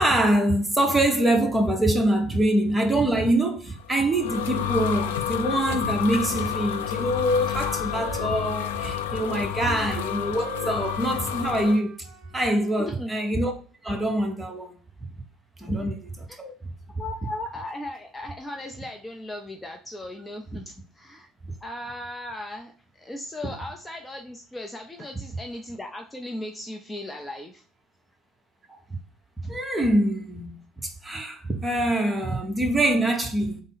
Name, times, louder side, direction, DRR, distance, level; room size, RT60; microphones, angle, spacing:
voice 1, 0.0-11.9 12.3-13.5 13.8-14.8 15.6-16.5 29.4-33.6, right 1 dB, 10° right, 1.0 m, -24 dB
sound 1, 3.8-11.8, left 9 dB, 80° left, 0.3 m, -30 dB
Wind instrument woodwind instrument, 5.9-9.0 9.5-12.8, right 5 dB, 55° right, 0.7 m, -45 dB
voice 2, 12.8-13.1 16.3-16.4 17.0-21.3 21.6-27.6, left 1 dB, 15° left, 0.5 m, -37 dB
3.7 x 2.0 x 3.9 m
hypercardioid pair, 65°, 0 cm